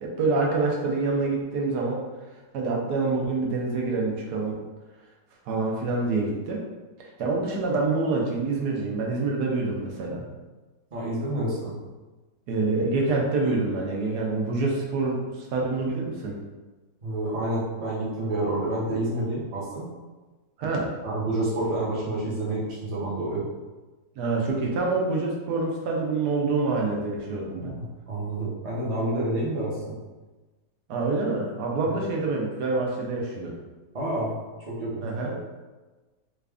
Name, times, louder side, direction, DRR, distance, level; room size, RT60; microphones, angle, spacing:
voice 1, 0.0-2.0 2.5-4.6 5.5-6.6 7.2-10.3 12.5-16.3 20.6-20.9 24.2-27.7 30.9-33.5 35.0-35.3, right 3 dB, 80° right, -1 dB, 1.2 m, -26 dB
voice 2, 10.9-11.8 17.0-19.9 21.0-23.5 27.5-30.0 31.8-32.0 33.9-34.3 34.7-35.4, right 1 dB, 30° right, -7 dB, 0.7 m, -29 dB
3.2 x 2.5 x 3.4 m, 1.2 s
omnidirectional pair, 1.7 m